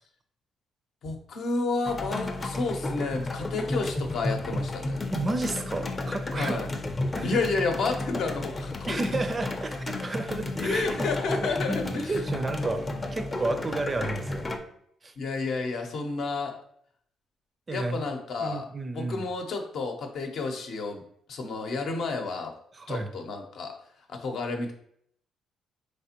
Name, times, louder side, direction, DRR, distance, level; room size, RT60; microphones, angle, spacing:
voice 1, 1.0-5.0 6.3-6.7 7.2-9.0 10.6-12.2 15.2-16.5 17.7-18.6 18.9-21.0 21.3-22.5 22.9-23.7 24.1-24.7, left 3 dB, 70° left, 3 dB, 0.7 m, -30 dB
sound 1, 1.9-14.6, left 2 dB, 25° left, 0.5 m, -32 dB
voice 2, 5.1-6.6 7.1-7.3 8.9-11.1 11.7-14.5 15.0-15.1 17.7-18.1 18.4-19.3 22.8-23.1, right 3 dB, 30° right, 8 dB, 0.4 m, -32 dB
4.1 x 3.3 x 2.9 m, 0.67 s
cardioid pair, 90°, 0 cm